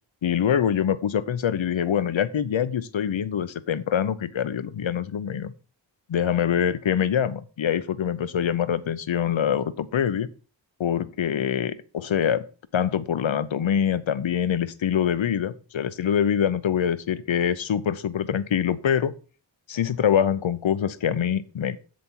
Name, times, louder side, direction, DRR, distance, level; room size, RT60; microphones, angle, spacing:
voice 1, 0.2-5.5 6.1-10.3 10.8-12.5 12.7-19.1 19.7-21.8, left 8 dB, 75° left, 15 dB, 0.8 m, -24 dB
7.7 x 7.0 x 4.5 m, 0.37 s
cardioid pair, 45°, 47 cm